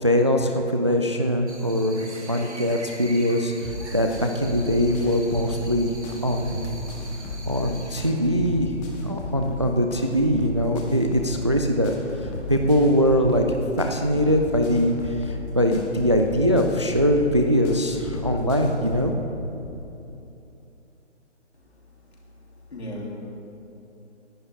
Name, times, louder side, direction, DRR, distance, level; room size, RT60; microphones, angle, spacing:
voice 1, 0.0-5.9 6.2-6.8 7.5-8.7 9.0-11.9 12.2-19.1, equal, 25° right, 4 dB, 0.4 m, -22 dB
sound 1, 1.5-8.1, right 2 dB, 65° right, 2.1 m, -43 dB
sound 2, 3.6-19.1, left 2 dB, 10° left, 0.8 m, -35 dB
voice 2, 21.5-21.9 22.7-23.1, left 1 dB, 60° left, -3 dB, 3.3 m, -37 dB
18.0 x 11.0 x 3.6 m, 2.9 s
figure-of-eight pair, 140°, 36 cm